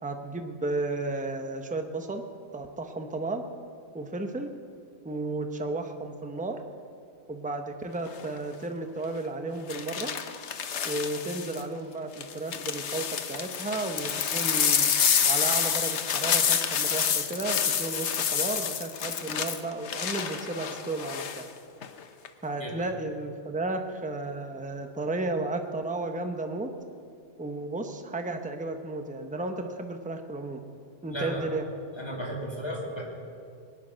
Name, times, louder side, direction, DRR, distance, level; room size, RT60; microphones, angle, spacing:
voice 1, 0.0-2.2 2.5-3.4 3.9-4.5 5.0-6.6 7.3-10.1 10.8-14.9 15.2-21.5 22.4-26.7 27.4-30.6 31.0-31.7, right 2 dB, 10° right, 5 dB, 0.8 m, -33 dB
sound 1, 8.1-8.4 9.7-11.6 12.2-21.4 21.8-22.3, left 8 dB, 80° left, 1.1 m, -28 dB
voice 2, 31.1-31.5 32.0-33.0, equal, 20° left, -3 dB, 3.0 m, -34 dB
21.5 x 10.0 x 6.4 m, 2.4 s
omnidirectional pair, 1.2 m